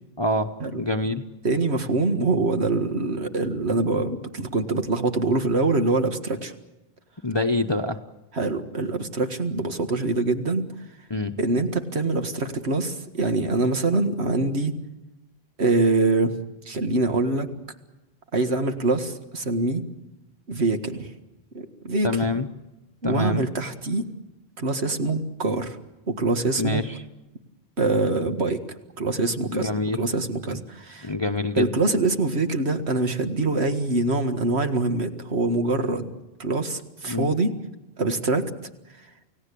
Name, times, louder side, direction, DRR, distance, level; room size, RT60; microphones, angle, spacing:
voice 1, 0.2-1.2 7.2-8.0 11.1-11.3 22.0-22.5 23.0-23.4 26.6-27.0 29.5-30.0 30.5-30.6 31.0-31.7 37.1-37.3, left 2 dB, 25° left, 6 dB, 0.9 m, -26 dB
voice 2, 1.4-6.5 8.3-10.6 11.4-14.7 15.6-16.4 16.7-17.5 18.3-19.8 20.5-21.1 21.5-22.2 23.0-24.1 24.6-25.8 26.1-26.8 27.8-28.6 29.0-29.7 30.0-31.1 31.6-36.1 36.4-37.5 38.0-38.4, right 3 dB, 85° right, 8 dB, 2.1 m, -24 dB
29.0 x 18.0 x 8.5 m, 1.0 s
omnidirectional pair, 1.1 m